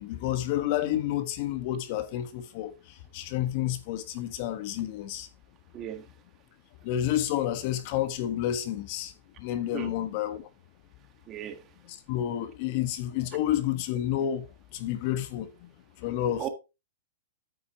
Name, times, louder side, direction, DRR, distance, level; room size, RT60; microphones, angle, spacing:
voice 1, 0.0-5.3 6.8-9.1 9.4-10.5 11.9-14.5 14.7-15.7 16.0-16.5, left 12 dB, 50° left, 1.4 m, -30 dB
voice 2, 5.7-6.0 9.7-9.9 11.3-11.6 16.4-16.5, right 11 dB, 30° right, 1.7 m, -36 dB
9.3 x 8.5 x 3.0 m
hypercardioid pair, 130°, 0 cm